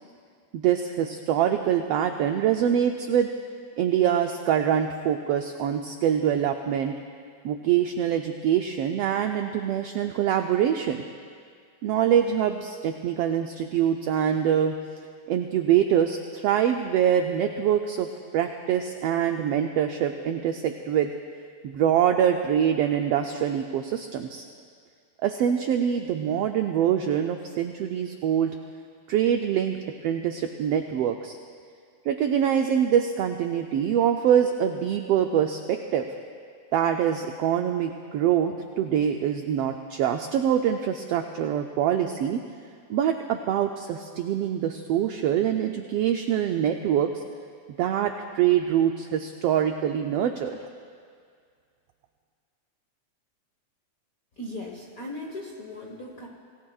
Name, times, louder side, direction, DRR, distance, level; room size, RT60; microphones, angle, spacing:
voice 1, 0.5-3.3 3.8-6.9 7.4-11.0 11.8-14.7 15.3-18.1 18.3-21.1 21.6-24.4 25.2-28.5 29.1-31.4 32.1-36.0 36.7-42.4 42.9-47.1 47.8-50.6, right 9 dB, 90° right, 5 dB, 1.3 m, -24 dB
voice 2, 54.4-56.3, left 1 dB, 55° left, -1 dB, 1.0 m, -38 dB
26.5 x 18.0 x 2.4 m, 2.2 s
omnidirectional pair, 3.4 m